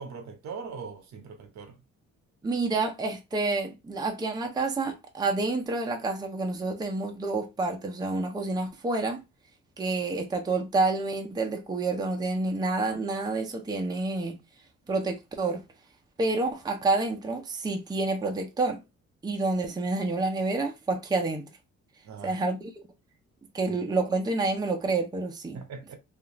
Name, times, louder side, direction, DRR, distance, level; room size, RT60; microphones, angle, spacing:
voice 1, 0.0-1.8 22.0-22.4 23.7-23.8 25.5-25.9, right 5 dB, 65° right, 0.9 m, -41 dB
voice 2, 2.4-9.2 9.8-14.4 14.9-15.6 16.2-18.8 19.2-21.4 22.2-22.7 23.5-25.6, right 3 dB, 15° right, 0.5 m, -28 dB
2.4 x 2.4 x 2.9 m
cardioid pair, 90°, 30 cm